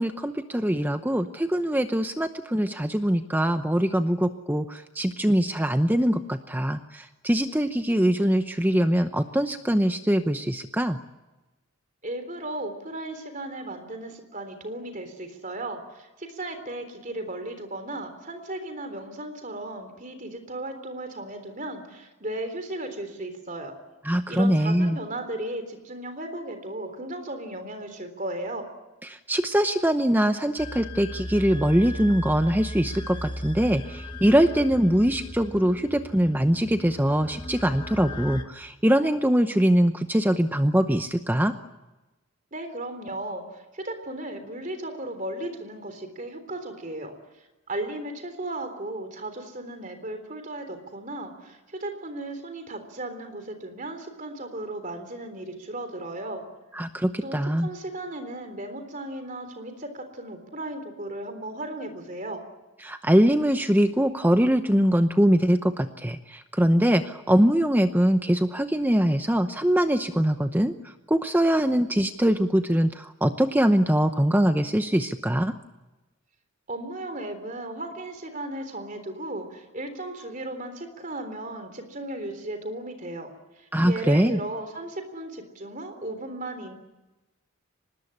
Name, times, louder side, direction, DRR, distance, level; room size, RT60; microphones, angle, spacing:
voice 1, 0.0-11.0 24.1-25.0 29.3-41.5 56.8-57.7 62.8-70.7 71.1-75.5 83.7-84.4, equal, 10° right, 8 dB, 0.8 m, -22 dB
voice 2, 12.0-23.7 24.3-28.7 42.5-47.1 47.7-56.4 57.2-62.4 76.7-83.3 83.6-86.7, right 1 dB, 35° right, 7 dB, 3.6 m, -35 dB
sound 1, 30.6-38.4, left 1 dB, 20° left, 1.5 m, -37 dB
24.5 x 20.0 x 9.9 m, 1.1 s
head